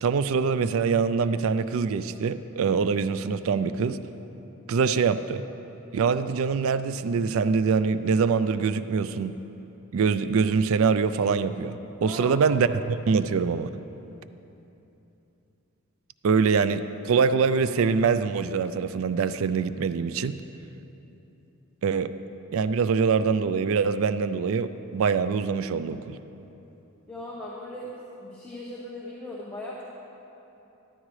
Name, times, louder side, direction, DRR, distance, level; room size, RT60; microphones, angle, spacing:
voice 1, 0.0-4.0 4.7-5.4 5.9-9.3 9.9-13.7 16.2-20.4 21.8-22.1 22.5-26.2, right 5 dB, 65° right, 12 dB, 0.4 m, -24 dB
voice 2, 12.0-12.4 27.1-27.9 28.2-29.8, left 1 dB, 5° left, -6 dB, 1.0 m, -38 dB
13.5 x 13.0 x 3.2 m, 3.0 s
head